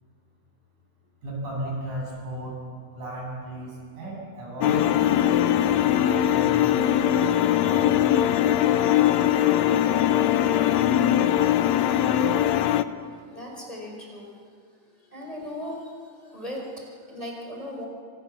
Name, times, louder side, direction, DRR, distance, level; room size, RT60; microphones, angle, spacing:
voice 1, 1.2-2.6 2.9-5.7 6.3-7.9, right 1 dB, 90° right, -2 dB, 9.5 m, -35 dB
sound 1, 4.6-12.8, left 11 dB, 70° left, 1.9 m, -21 dB
voice 2, 13.3-14.3 15.1-15.9 16.2-17.9, left 1 dB, 10° left, -1 dB, 5.3 m, -37 dB
29.0 x 25.0 x 7.4 m, 2.3 s
omnidirectional pair, 3.4 m